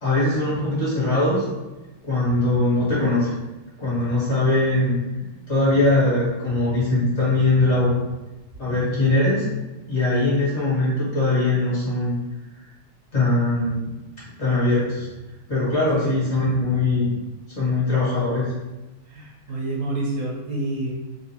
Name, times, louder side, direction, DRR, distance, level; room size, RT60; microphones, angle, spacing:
voice 1, 0.0-1.4 2.0-3.3 3.8-5.0 5.5-8.0 8.6-9.5 9.9-12.2 13.1-13.8 14.4-15.1 15.5-17.1 17.5-18.5, left 2 dB, 35° left, -9 dB, 1.7 m, -21 dB
voice 2, 19.1-20.9, right 2 dB, 55° right, -3 dB, 0.9 m, -28 dB
3.7 x 2.7 x 2.8 m, 1.1 s
omnidirectional pair, 2.2 m